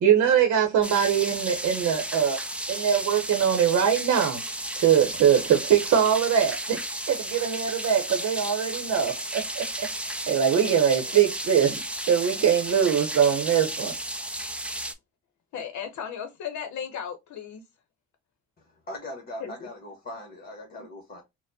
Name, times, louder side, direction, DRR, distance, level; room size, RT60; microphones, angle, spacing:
voice 1, 0.0-2.4 2.7-4.4 4.8-6.8 7.1-9.6 10.0-13.9, right 8 dB, 60° right, 0.8 m, -22 dB
sound 1, 0.8-14.9, right 1 dB, 5° right, 0.4 m, -33 dB
voice 2, 15.5-17.6 19.4-19.7, left 8 dB, 75° left, 0.8 m, -35 dB
voice 3, 18.6-21.2, left 1 dB, 30° left, 1.2 m, -40 dB
4.1 x 2.1 x 2.6 m
cardioid pair, 90°, 30 cm